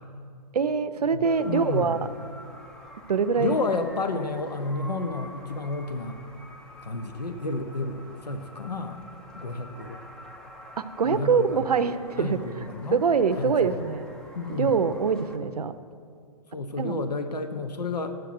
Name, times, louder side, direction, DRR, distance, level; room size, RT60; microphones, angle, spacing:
voice 1, 0.5-2.0 3.1-3.6 10.8-12.6 12.9-14.1 14.5-15.7 16.8-17.0, right 5 dB, 70° right, 13 dB, 0.6 m, -24 dB
sound 1, 1.2-15.4, equal, 5° left, 0.5 m, -47 dB
voice 2, 1.5-2.0 3.4-6.2 6.8-9.0 9.3-10.0 11.0-11.6 12.2-13.0 13.4-13.7 14.4-14.8 16.5-18.2, left 3 dB, 80° left, 7 dB, 0.9 m, -31 dB
8.0 x 7.6 x 8.6 m, 2.3 s
figure-of-eight pair, 125°, 20 cm